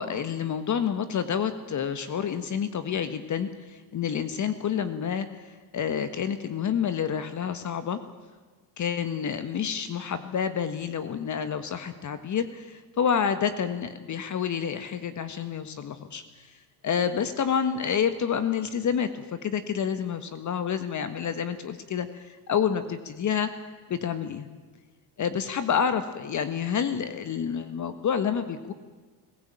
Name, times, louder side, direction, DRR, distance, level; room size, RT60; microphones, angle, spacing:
voice 1, 0.0-8.0 8.8-16.5 16.8-23.5 23.9-24.5 25.2-28.7, left 7 dB, 35° left, 10 dB, 1.5 m, -29 dB
22.5 x 15.5 x 8.9 m, 1.4 s
supercardioid pair, 95°, 48 cm